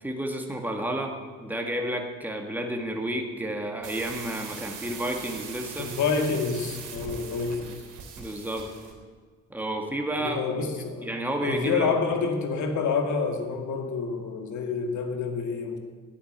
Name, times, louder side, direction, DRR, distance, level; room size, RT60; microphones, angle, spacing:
voice 1, 0.0-5.9 8.2-8.7 9.5-10.7 11.0-11.9, right 1 dB, 5° right, 2 dB, 2.1 m, -31 dB
sound 1, 3.8-9.0, right 6 dB, 90° right, 3.4 m, -41 dB
voice 2, 5.8-7.7 10.2-11.1 11.4-15.8, left 5 dB, 75° left, 4 dB, 2.3 m, -28 dB
11.5 x 9.6 x 9.0 m, 1.5 s
cardioid pair, 90°, 30 cm